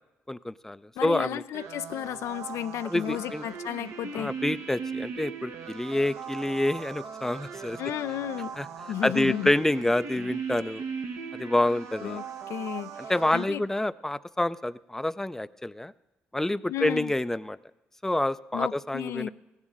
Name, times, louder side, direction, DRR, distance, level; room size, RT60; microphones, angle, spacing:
voice 1, 0.3-1.4 2.9-3.4 4.1-7.8 8.6-8.7 9.0-10.8 11.3-12.2 13.1-15.9 16.3-17.6 18.0-19.3, left 1 dB, 10° left, 15 dB, 0.4 m, -27 dB
voice 2, 1.0-4.3 7.8-8.6 8.9-9.5 12.0-12.2 12.5-13.6 16.7-17.1 18.5-19.3, left 11 dB, 75° left, 12 dB, 0.4 m, -33 dB
sound 1, 1.5-13.4, right 6 dB, 75° right, 1.1 m, -39 dB
16.0 x 7.3 x 9.0 m, 1.1 s
supercardioid pair, 55°, 5 cm